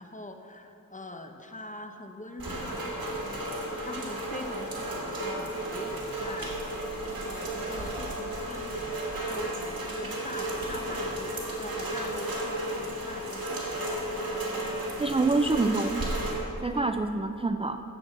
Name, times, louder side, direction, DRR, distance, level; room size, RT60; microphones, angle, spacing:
voice 1, 0.0-6.6 7.2-13.9 16.7-17.0, left 2 dB, 20° left, 5 dB, 0.9 m, -42 dB
Rain, 2.4-16.3, right 1 dB, 80° right, 2.2 m, -33 dB
voice 2, 15.0-16.1 16.6-17.8, right 3 dB, 15° right, 7 dB, 0.3 m, -26 dB
9.2 x 7.7 x 7.4 m, 2.8 s
wide cardioid pair, 70°, 35 cm